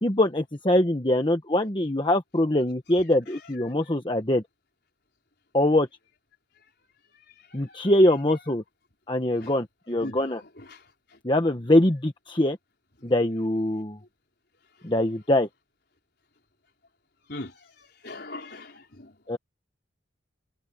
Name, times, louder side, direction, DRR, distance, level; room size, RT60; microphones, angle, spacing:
voice 1, 0.0-4.4 5.5-5.9 7.5-8.6 9.1-10.4 11.2-12.6 13.0-14.0 14.8-15.5 19.3-19.4, left 1 dB, 25° left, 1.2 m, -23 dB
voice 2, 10.0-10.8 17.3-17.6 18.0-19.2, left 2 dB, 55° left, 4.9 m, -40 dB
head